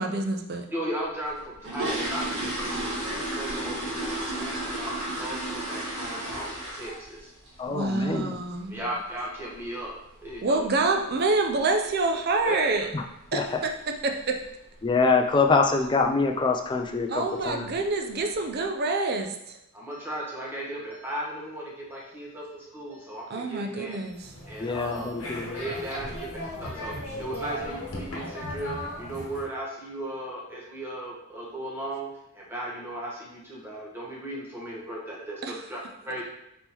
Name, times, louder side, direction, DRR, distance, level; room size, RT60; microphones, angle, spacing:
voice 1, 0.0-0.7 7.7-8.9 10.4-12.9 13.3-14.4 17.1-19.6 23.3-24.2 35.4-35.5, right 3 dB, 50° right, 4 dB, 0.5 m, -27 dB
voice 2, 0.7-7.3 8.7-9.9 10.2-10.7 12.4-12.8 17.3-17.5 19.7-24.1 24.5-26.1 26.6-32.1 32.3-36.2, right 1 dB, 10° right, -5 dB, 1.1 m, -36 dB
sound 1, 1.3-7.2 7.5-7.7 8.1-8.2 8.5-8.7 9.1-9.3 9.6-9.7 10.2-10.3 10.6-10.8 11.3-11.6 11.9-12.0 12.4-12.6 12.9-13.0 13.4-13.5 14.1-14.4 14.8-15.1 15.4-15.5 16.0-16.1 16.8-17.0 17.4-17.9 18.3-18.4, right 1 dB, 75° right, 1.3 m, -32 dB
voice 3, 7.6-8.4 12.9-13.0 13.3-13.6 14.8-17.8 24.6-25.6, left 4 dB, 20° left, 4 dB, 0.3 m, -25 dB
sound 2, 24.0-29.5, left 1 dB, 80° left, 1.0 m, -37 dB
4.1 x 3.6 x 3.0 m, 0.84 s
head